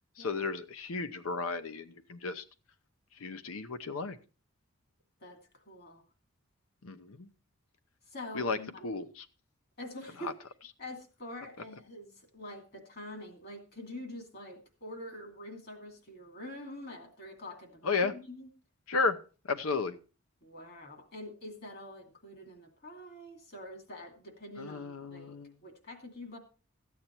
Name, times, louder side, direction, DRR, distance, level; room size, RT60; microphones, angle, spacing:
voice 1, 0.2-2.4 3.2-4.2 6.8-7.3 8.3-8.6 8.8-9.2 10.2-10.3 17.8-18.1 18.9-19.2 19.5-20.0 24.6-25.5, left 4 dB, 80° left, 11 dB, 0.8 m, -33 dB
voice 2, 5.2-6.0 8.1-8.8 9.8-10.3 10.8-18.5 20.4-26.4, left 1 dB, 45° left, 4 dB, 2.5 m, -46 dB
13.5 x 8.5 x 4.4 m, 0.35 s
head